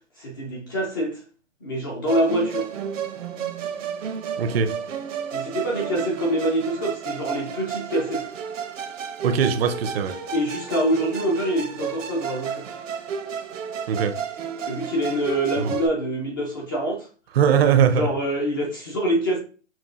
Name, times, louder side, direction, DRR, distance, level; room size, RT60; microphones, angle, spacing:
voice 1, 0.2-1.2 1.6-2.7 5.3-8.3 10.3-12.7 14.6-17.1 18.0-19.4, right 1 dB, 20° left, 0.4 m, -25 dB
Musical instrument, 2.1-15.9, right 7 dB, 75° right, 0.9 m, -32 dB
voice 2, 4.4-4.7 9.2-10.2 13.9-14.2 15.6-15.8 17.3-18.1, right 7 dB, 50° right, 0.6 m, -20 dB
5.8 x 2.3 x 2.4 m
hypercardioid pair, 145°, 38 cm